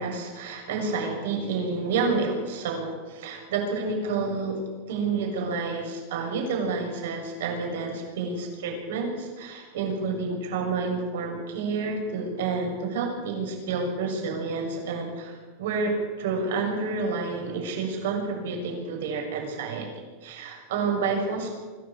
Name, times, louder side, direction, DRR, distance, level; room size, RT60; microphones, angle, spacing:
voice 1, 0.0-4.6 4.9-19.9 20.2-21.5, right 4 dB, 80° right, 1 dB, 6.7 m, -29 dB
24.5 x 15.5 x 8.7 m, 1.4 s
supercardioid pair, 155°, 0 cm